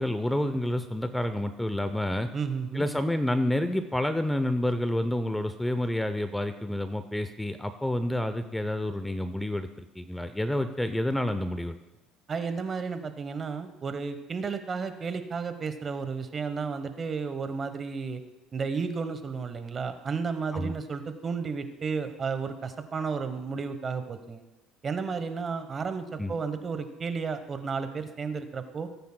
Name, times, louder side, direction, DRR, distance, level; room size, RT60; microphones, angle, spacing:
voice 1, 0.0-2.3 2.7-9.7 10.0-11.8 20.5-20.8 26.2-26.3, left 1 dB, 5° left, 10 dB, 0.5 m, -29 dB
voice 2, 2.3-2.9 12.3-18.2 18.5-24.4 24.8-28.9, right 5 dB, 30° right, 9 dB, 1.0 m, -32 dB
18.5 x 9.2 x 2.2 m, 1.1 s
supercardioid pair, 105°, 0 cm